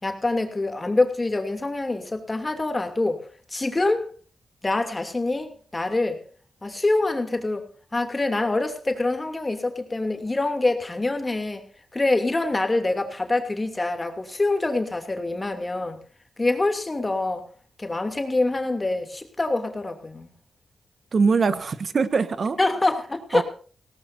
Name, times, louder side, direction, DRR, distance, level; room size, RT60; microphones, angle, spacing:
voice 1, 0.0-3.2 3.5-4.1 4.6-6.2 6.6-7.7 7.9-11.6 11.9-16.0 16.4-17.5 17.8-20.3 22.6-23.4, left 2 dB, 30° left, 6 dB, 2.8 m, -25 dB
voice 2, 21.1-22.6 23.3-23.4, right 4 dB, 55° right, 12 dB, 1.4 m, -22 dB
18.5 x 18.0 x 2.7 m, 0.43 s
cardioid pair, 50°, 0 cm